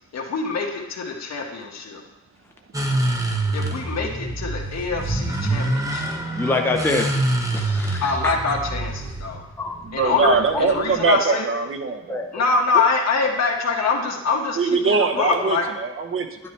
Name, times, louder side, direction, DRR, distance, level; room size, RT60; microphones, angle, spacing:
voice 1, 0.1-2.0 3.5-6.2 8.0-9.4 9.9-11.4 12.3-15.6, left 4 dB, 60° left, 0 dB, 1.7 m, -25 dB
sound 1, 2.7-11.1, right 2 dB, 10° right, 1.1 m, -26 dB
voice 2, 6.3-7.0 7.5-8.3 9.6-9.8 12.1-12.3 15.1-15.3, left 3 dB, 10° left, 2 dB, 0.7 m, -25 dB
voice 3, 9.8-12.1 14.6-16.4, right 4 dB, 45° right, 5 dB, 0.9 m, -22 dB
10.5 x 9.6 x 3.3 m, 0.94 s
wide cardioid pair, 135°, 29 cm